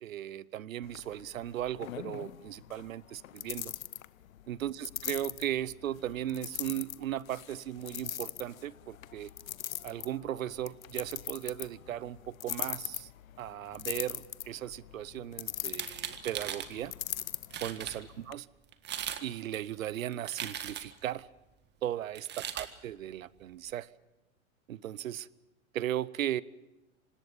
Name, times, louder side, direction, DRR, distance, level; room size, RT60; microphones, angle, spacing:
voice 1, 0.0-3.7 4.5-9.3 9.8-13.1 13.4-16.9 17.6-18.5 19.2-21.3 21.8-22.3 22.5-23.9 24.7-25.3 25.7-26.4, right 12 dB, 70° right, 21 dB, 0.9 m, -37 dB
sound 1, 0.8-18.4, left 11 dB, 75° left, 0.9 m, -42 dB
sound 2, 15.6-16.7 17.2-17.3 17.5-18.0 18.7-19.2 19.5-21.0 22.1-22.7, right 10 dB, 25° right, 1.8 m, -38 dB
26.0 x 19.5 x 7.2 m, 0.99 s
hypercardioid pair, 105°, 41 cm